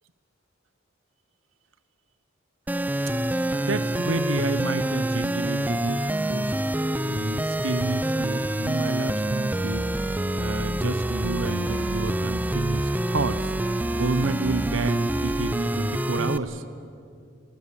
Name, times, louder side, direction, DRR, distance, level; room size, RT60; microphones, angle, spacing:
sound 1, 2.7-16.4, right 1 dB, 10° right, 0.5 m, -26 dB
voice 1, 3.5-6.5 7.1-9.9 10.4-13.5 13.9-16.6, right 3 dB, 85° right, 12 dB, 1.0 m, -30 dB
20.5 x 19.0 x 8.6 m, 2.4 s
head